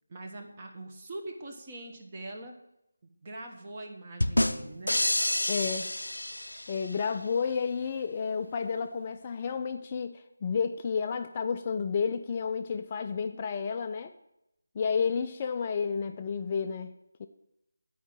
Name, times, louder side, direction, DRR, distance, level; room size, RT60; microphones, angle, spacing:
voice 1, 0.1-2.5 3.2-5.0, right 2 dB, 25° right, 2 dB, 1.2 m, -42 dB
sound 1, 4.2-7.0, left 1 dB, 75° left, 0.5 m, -28 dB
voice 2, 5.5-5.9 6.7-14.1 14.8-16.9 17.2-17.3, left 6 dB, 25° left, 6 dB, 0.4 m, -31 dB
9.8 x 4.9 x 7.4 m, 0.85 s
figure-of-eight pair, 160°, 0 cm